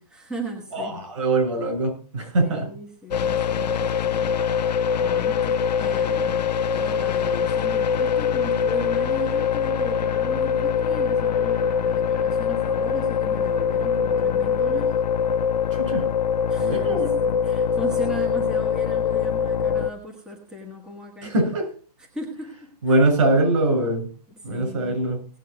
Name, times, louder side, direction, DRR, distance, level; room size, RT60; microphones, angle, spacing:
voice 1, 0.0-1.0 2.4-4.4 5.0-15.0 16.5-21.3 22.0-22.9 24.3-25.0, equal, 5° right, 1 dB, 1.3 m, -37 dB
voice 2, 0.7-2.7 15.7-16.1 16.6-17.1 21.2-21.7 22.8-24.1 24.4-25.2, right 2 dB, 50° right, 4 dB, 7.7 m, -22 dB
sound 1, 3.1-19.9, left 7 dB, 80° left, 0.8 m, -23 dB
18.5 x 8.2 x 4.7 m, 0.39 s
hypercardioid pair, 180°, 21 cm